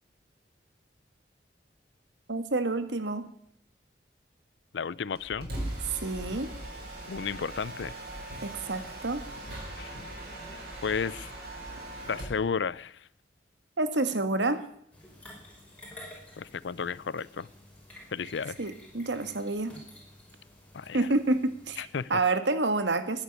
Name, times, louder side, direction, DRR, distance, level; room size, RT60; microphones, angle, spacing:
voice 1, 2.3-3.3 5.9-6.5 8.4-9.2 13.8-14.6 18.6-19.8 20.9-23.2, right 2 dB, 90° right, 10 dB, 1.6 m, -28 dB
voice 2, 4.7-5.5 7.1-7.9 9.8-9.9 10.8-11.3 12.1-13.1 16.4-17.5 18.1-18.6 20.7-21.1 21.8-22.2, left 6 dB, 90° left, 21 dB, 0.5 m, -33 dB
Mechanisms, 5.2-12.4, right 1 dB, 60° right, 7.3 m, -40 dB
sound 1, 14.9-22.1, left 1 dB, 10° left, 5.6 m, -51 dB
14.0 x 10.0 x 9.8 m, 0.69 s
head